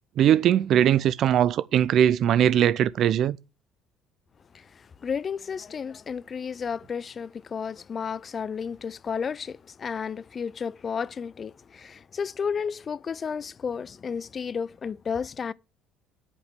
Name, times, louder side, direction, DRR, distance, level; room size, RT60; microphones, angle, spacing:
voice 1, 0.2-3.4, right 10 dB, 55° right, 0.5 m, -20 dB
voice 2, 4.5-15.5, left 6 dB, 40° left, 0.5 m, -32 dB
8.5 x 5.3 x 7.5 m
hypercardioid pair, 60°, 0 cm